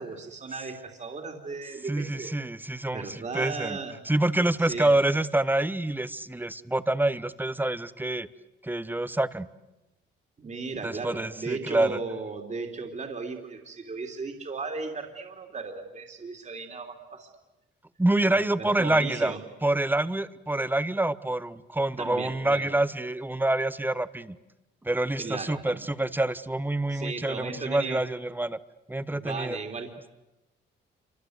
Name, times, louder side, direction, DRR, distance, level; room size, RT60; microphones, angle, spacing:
voice 1, 0.0-2.4 2.9-4.0 4.6-4.9 10.4-17.3 18.3-19.4 22.0-22.7 25.2-25.9 26.9-28.0 29.1-29.9, right 4 dB, 35° right, 3 dB, 3.2 m, -36 dB
voice 2, 1.9-3.8 4.1-8.3 8.6-9.5 10.8-12.0 18.0-19.3 19.6-24.4 24.8-28.6 28.9-29.6, right 1 dB, 10° right, 15 dB, 1.1 m, -27 dB
27.5 x 25.0 x 8.1 m, 1.0 s
cardioid pair, 90°, 20 cm